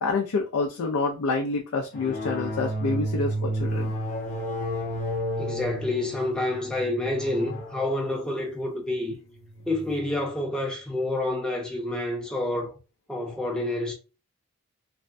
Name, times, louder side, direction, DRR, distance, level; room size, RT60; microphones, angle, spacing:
voice 1, 0.0-3.9, left 3 dB, 85° left, 0.5 m, -27 dB
sound 1, 1.9-10.1, equal, 35° left, 0.9 m, -32 dB
voice 2, 5.4-9.2 9.7-12.7 13.1-13.9, left 1 dB, 5° left, 0.6 m, -28 dB
3.3 x 2.1 x 2.6 m
head